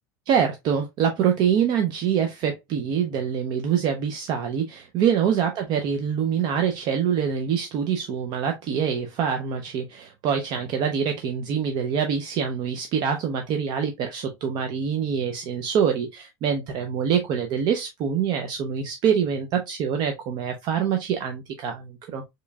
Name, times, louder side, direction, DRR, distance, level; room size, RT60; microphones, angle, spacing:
voice 1, 0.3-22.2, right 7 dB, 45° right, 0.6 m, -25 dB
4.6 x 3.1 x 2.2 m
cardioid pair, 165°, 10 cm